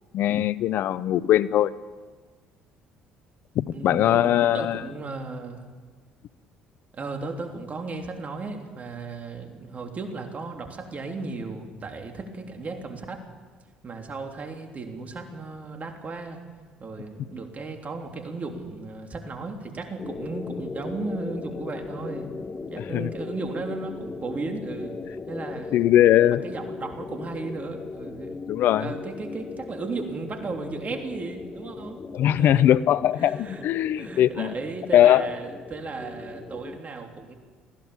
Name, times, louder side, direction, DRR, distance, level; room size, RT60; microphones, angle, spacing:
voice 1, 0.1-1.7 3.6-4.8 22.9-23.1 25.7-26.4 28.5-28.9 32.1-34.5 34.9-35.3, left 12 dB, 60° left, 18 dB, 0.7 m, -20 dB
voice 2, 3.7-5.7 6.9-13.2 13.8-16.4 16.8-22.3 22.7-25.0 25.3-28.4 28.8-32.0 32.3-32.6 33.2-33.7 34.0-37.3, right 3 dB, 40° right, 3 dB, 3.5 m, -35 dB
sound 1, 20.0-36.8, left 4 dB, 30° left, 1.0 m, -38 dB
20.5 x 16.0 x 8.7 m, 1.5 s
hypercardioid pair, 60°, 4 cm